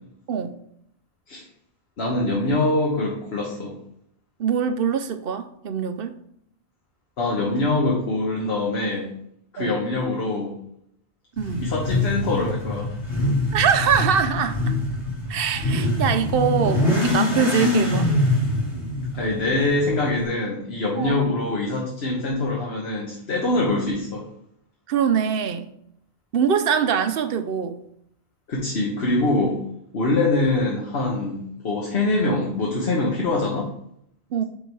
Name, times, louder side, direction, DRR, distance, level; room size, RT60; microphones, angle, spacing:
voice 1, 2.0-3.7 7.2-9.1 9.5-10.5 11.6-12.9 19.0-24.3 28.5-29.6 29.9-33.7, left 2 dB, 70° left, -2 dB, 1.3 m, -24 dB
voice 2, 4.4-6.1 9.6-9.7 11.4-11.7 13.5-14.8 15.3-18.1 21.0-21.3 24.9-25.7 26.3-27.8 34.3-34.4, right 7 dB, 65° right, 9 dB, 0.7 m, -23 dB
Motorcycle / Accelerating revving vroom, 11.4-20.2, left 1 dB, 90° left, 2.2 m, -24 dB
6.7 x 3.9 x 4.6 m, 0.73 s
omnidirectional pair, 1.1 m